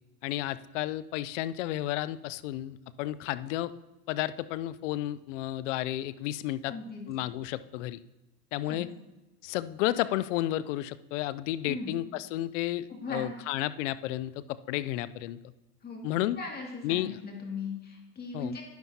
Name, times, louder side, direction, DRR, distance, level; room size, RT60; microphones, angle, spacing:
voice 1, 0.2-3.7 4.1-6.7 7.1-8.0 8.5-8.9 9.4-15.4 16.0-16.4 16.8-17.2 18.3-18.6, left 14 dB, 50° left, 16 dB, 0.5 m, -32 dB
voice 2, 6.7-7.0 8.7-8.8 11.7-11.9 13.0-13.3 15.8-16.0 16.4-18.6, left 4 dB, 20° left, -1 dB, 2.3 m, -38 dB
10.5 x 10.5 x 2.8 m, 1.0 s
hypercardioid pair, 110°, 48 cm